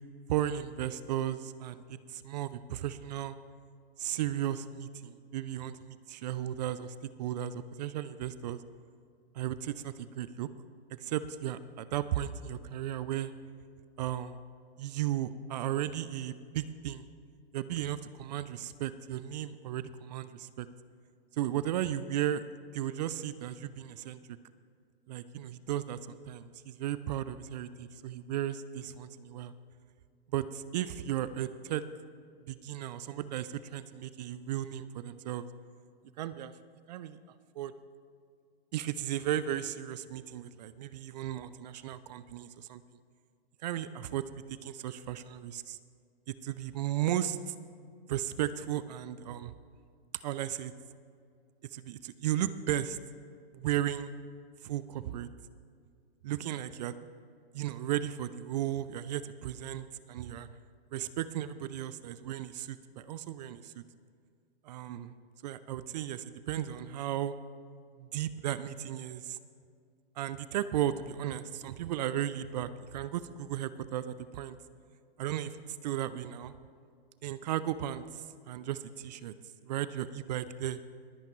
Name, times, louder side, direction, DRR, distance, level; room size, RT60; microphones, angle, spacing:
voice 1, 0.3-3.3 4.0-8.6 9.3-10.5 11.0-13.3 14.0-14.4 14.8-17.1 17.5-20.7 21.4-22.4 22.7-24.2 25.1-29.5 30.3-31.8 32.5-35.4 36.2-36.5 36.9-37.2 37.6-37.7 38.7-42.8 43.6-44.2 44.6-45.8 46.3-47.5 48.1-49.5 50.2-50.7 51.7-53.0 53.5-54.1 54.6-55.3 56.2-56.9 57.5-60.5 60.9-63.8 64.6-65.1 65.4-67.3 68.0-69.4 70.2-74.6 75.2-75.6 75.8-76.5 77.2-79.3 79.7-80.8, right 11 dB, 45° right, 15 dB, 0.5 m, -35 dB
22.5 x 8.9 x 3.1 m, 2.3 s
hypercardioid pair, 130°, 31 cm